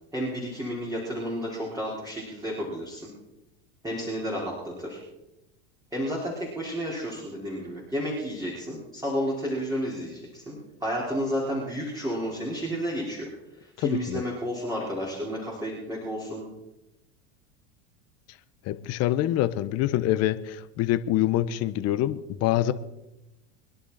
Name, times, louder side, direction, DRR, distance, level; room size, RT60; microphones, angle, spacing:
voice 1, 0.1-3.0 3.8-5.0 5.9-16.4, equal, 10° right, -5 dB, 5.1 m, -31 dB
voice 2, 13.8-14.2 18.3-18.4 18.6-22.7, left 13 dB, 50° left, 13 dB, 1.2 m, -25 dB
25.0 x 11.0 x 4.4 m, 0.95 s
hypercardioid pair, 100°, 34 cm